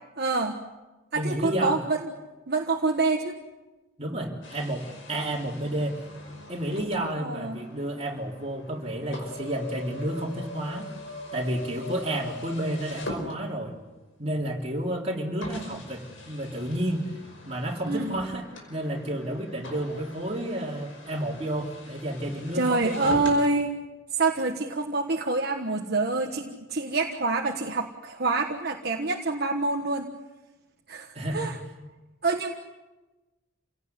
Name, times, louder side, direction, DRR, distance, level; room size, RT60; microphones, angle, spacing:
voice 1, 0.2-0.6 1.1-2.0 2.5-3.4 7.2-7.6 17.9-18.1 22.5-23.7 24.1-30.1 30.9-31.6 32.2-32.5, right 3 dB, 50° right, 2 dB, 1.5 m, -26 dB
voice 2, 1.1-1.8 4.0-6.0 6.5-10.9 11.3-13.7 14.2-23.2 31.1-31.6, right 1 dB, 30° right, -1 dB, 3.8 m, -31 dB
sound 1, 4.4-13.9 14.6-14.7 15.4-23.4, left 1 dB, 70° left, 5.3 m, -42 dB
28.5 x 17.5 x 9.7 m, 1.2 s
head